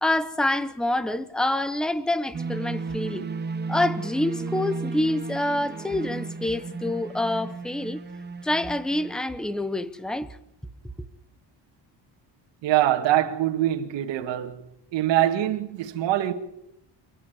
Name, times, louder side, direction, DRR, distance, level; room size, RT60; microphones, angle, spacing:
voice 1, 0.0-3.3 3.7-8.0 8.4-10.3, left 1 dB, ahead, 0.8 m, -26 dB
sound 1, 2.3-9.1, right 4 dB, 25° right, 1.2 m, -34 dB
voice 2, 12.6-14.6 14.9-16.3, right 13 dB, 80° right, 2.1 m, -23 dB
29.0 x 10.0 x 9.8 m
cardioid pair, 175°, 44 cm